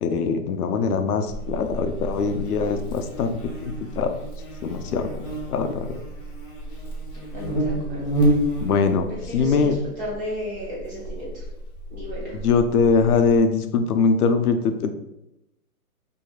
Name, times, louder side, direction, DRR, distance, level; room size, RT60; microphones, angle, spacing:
voice 1, 0.0-3.3 4.0-4.1 4.7-5.0 5.5-5.7 8.6-9.0 9.3-9.7 12.4-14.9, left 5 dB, 85° left, 7 dB, 0.6 m, -21 dB
Buzz, 1.3-13.4, right 1 dB, 35° left, 0.9 m, -30 dB
voice 2, 7.3-8.0 9.1-11.4 11.9-12.4, equal, 15° right, -6 dB, 1.0 m, -34 dB
4.5 x 2.7 x 2.3 m, 0.86 s
hypercardioid pair, 155°, 44 cm